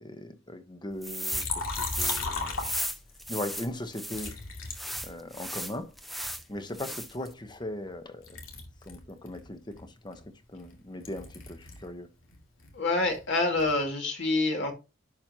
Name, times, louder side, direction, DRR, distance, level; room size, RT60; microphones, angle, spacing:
voice 1, 0.0-2.7 3.3-4.4 5.0-5.9 6.5-8.4 8.9-12.1, left 1 dB, 20° left, 1.0 m, -39 dB
sound 1, 1.0-1.5 1.7-4.3 4.7-6.4 6.7-7.3, equal, ahead, 0.7 m, -35 dB
Liquid, 1.3-3.3 4.1-5.7 6.2-8.0 8.2-11.9 12.2-13.8, left 4 dB, 85° left, 2.4 m, -38 dB
voice 2, 12.7-14.7, left 2 dB, 60° left, 2.2 m, -27 dB
10.5 x 5.2 x 2.9 m
head